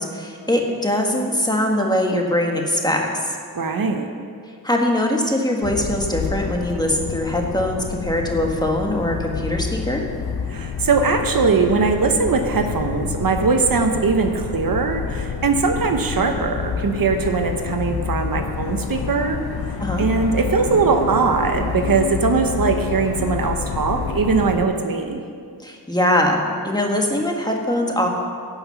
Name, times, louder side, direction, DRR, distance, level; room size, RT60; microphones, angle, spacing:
voice 1, 0.0-3.1 4.6-10.0 19.8-20.0 25.6-28.1, left 1 dB, 10° left, 0 dB, 1.6 m, -22 dB
voice 2, 3.5-4.1 10.5-19.4 20.0-25.2, right 4 dB, 65° right, 5 dB, 0.9 m, -20 dB
sound 1, 5.6-24.6, left 6 dB, 75° left, 0.7 m, -28 dB
15.5 x 5.8 x 5.9 m, 2.2 s
wide cardioid pair, 75°, 37 cm